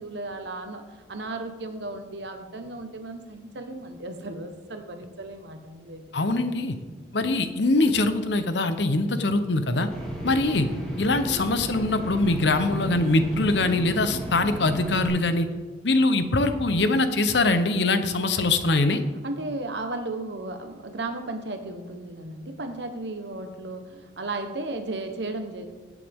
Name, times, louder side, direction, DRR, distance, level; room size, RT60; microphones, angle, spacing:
voice 1, 0.0-6.1 6.6-6.7 19.2-25.6, right 2 dB, 70° right, 6 dB, 1.2 m, -35 dB
voice 2, 6.1-6.7 7.1-9.9 10.2-10.7 11.0-15.5 15.8-19.0, left 2 dB, 75° left, 9 dB, 0.9 m, -23 dB
sound 1, 9.9-15.1, equal, 5° left, 2.7 m, -35 dB
16.5 x 8.4 x 3.7 m, 1.3 s
head